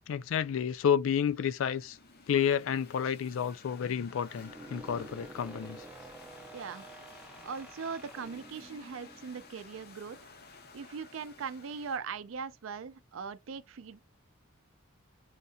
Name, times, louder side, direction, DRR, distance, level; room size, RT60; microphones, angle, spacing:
voice 1, 0.1-2.0 2.3-5.9, left 8 dB, 70° left, 0.3 m, -30 dB
sound 1, 1.3-12.0, left 4 dB, 50° left, 0.8 m, -54 dB
sound 2, 4.2-9.9, right 2 dB, 5° right, 0.6 m, -50 dB
voice 2, 6.5-6.9 7.4-10.2 10.7-14.0, right 5 dB, 70° right, 0.4 m, -40 dB
6.5 x 2.8 x 2.2 m
head